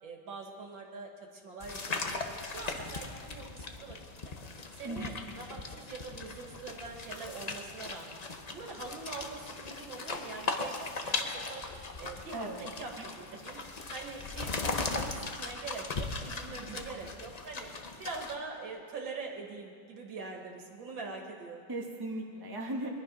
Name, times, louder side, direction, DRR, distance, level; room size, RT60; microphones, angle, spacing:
voice 1, 0.0-4.0 4.7-8.2 8.5-11.6 12.0-13.6 13.9-17.7 18.0-21.6, right 4 dB, 75° right, 1 dB, 2.5 m, -43 dB
sound 1, 1.6-18.3, left 3 dB, 65° left, 0.4 m, -38 dB
voice 2, 4.8-5.2 12.3-12.6 13.0-13.1 16.6-16.9 21.7-22.9, right 2 dB, 10° right, -1 dB, 1.4 m, -38 dB
22.0 x 11.0 x 5.5 m, 2.1 s
omnidirectional pair, 2.1 m